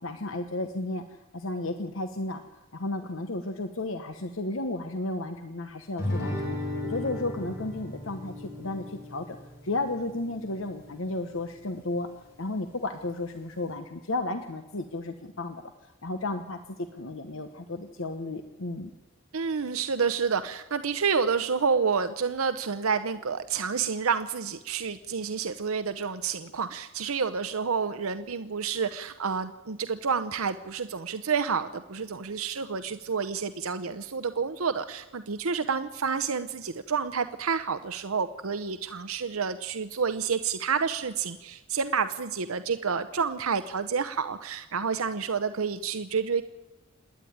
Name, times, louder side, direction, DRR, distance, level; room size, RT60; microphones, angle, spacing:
voice 1, 0.0-2.4 2.7-6.6 6.9-9.4 9.6-12.1 12.4-18.9, left 2 dB, 65° left, 8 dB, 1.1 m, -33 dB
Guitar, 6.0-11.0, left 1 dB, 50° left, 7.5 m, -36 dB
voice 2, 19.3-46.4, right 5 dB, 85° right, 10 dB, 0.8 m, -29 dB
27.0 x 10.5 x 9.3 m, 1.1 s
head